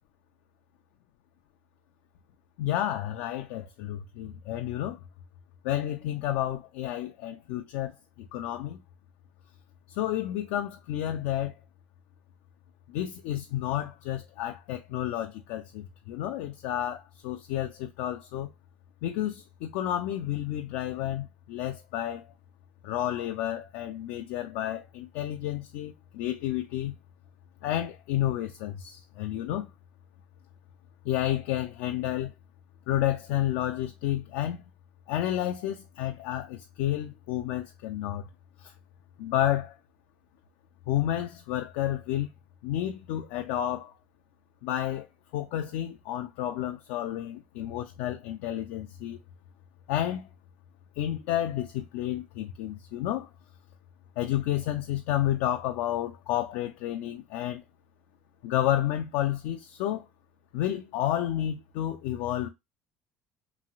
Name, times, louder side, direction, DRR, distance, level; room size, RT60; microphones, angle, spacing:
voice 1, 2.6-5.0 5.6-8.8 9.9-11.5 12.9-18.5 19.0-22.3 22.8-27.0 27.6-29.7 31.0-32.3 32.9-34.6 35.1-38.3 38.6-38.7 39.2-39.7 40.9-42.3 42.6-43.9 44.6-45.1 45.3-49.2 49.9-50.3 51.0-53.3 54.2-57.6 58.4-60.0 60.5-62.5, left 12 dB, 80° left, 0.3 m, -31 dB
3.0 x 2.6 x 2.3 m
supercardioid pair, 75°, 4 cm